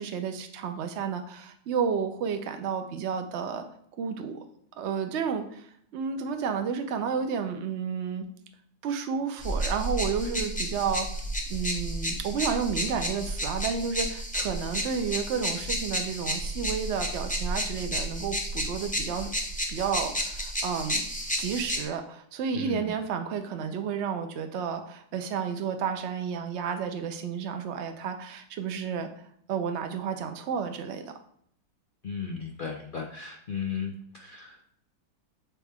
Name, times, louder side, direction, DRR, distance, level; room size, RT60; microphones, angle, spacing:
voice 1, 0.0-3.6 4.0-4.4 4.8-8.3 8.8-11.1 11.5-19.3 19.7-21.1 21.4-29.1 29.5-31.1, right 6 dB, 55° right, 7 dB, 0.8 m, -31 dB
sound 1, 9.4-21.8, equal, 10° left, 0.5 m, -31 dB
voice 2, 22.5-22.9 32.0-34.6, left 6 dB, 70° left, 0 dB, 0.4 m, -35 dB
7.2 x 4.4 x 3.6 m, 0.68 s
omnidirectional pair, 1.9 m